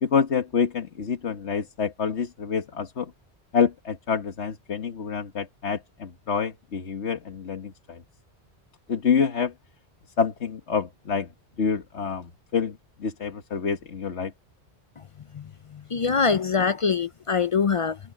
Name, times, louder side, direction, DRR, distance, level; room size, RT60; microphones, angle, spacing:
voice 1, 0.0-3.1 3.5-8.0 8.9-9.5 10.2-11.3 11.6-14.3, left 6 dB, 80° left, 1.7 m, -27 dB
voice 2, 15.7-18.0, left 5 dB, 60° left, 0.3 m, -24 dB
omnidirectional pair, 1.1 m